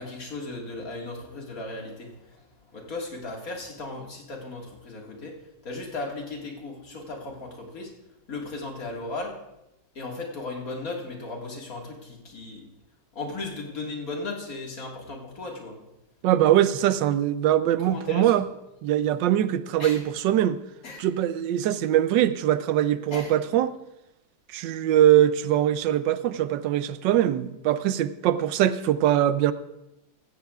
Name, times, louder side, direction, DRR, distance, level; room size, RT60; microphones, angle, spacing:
voice 1, 0.0-2.4 2.7-5.4 5.6-7.9 8.3-9.4 10.0-12.7 13.1-15.8 17.9-18.4 19.8-20.0 20.8-21.1 23.1-23.3, left 2 dB, 50° left, 0 dB, 2.3 m, -36 dB
voice 2, 16.2-18.4 18.8-20.6 21.0-23.7 24.5-29.5, right 11 dB, 80° right, 13 dB, 1.3 m, -22 dB
16.5 x 14.5 x 2.4 m, 0.92 s
omnidirectional pair, 2.0 m